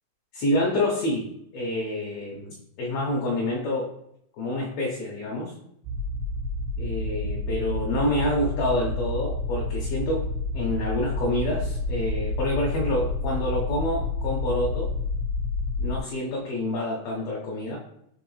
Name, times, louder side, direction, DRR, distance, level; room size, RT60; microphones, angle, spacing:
voice 1, 0.3-1.3 1.5-3.9 4.4-5.5 6.8-10.2 10.5-14.9 15.8-17.8, left 1 dB, 75° left, -3 dB, 1.6 m, -27 dB
sound 1, 5.8-16.0, left 2 dB, 85° right, 2.1 m, -29 dB
4.6 x 3.0 x 3.0 m, 0.74 s
omnidirectional pair, 3.5 m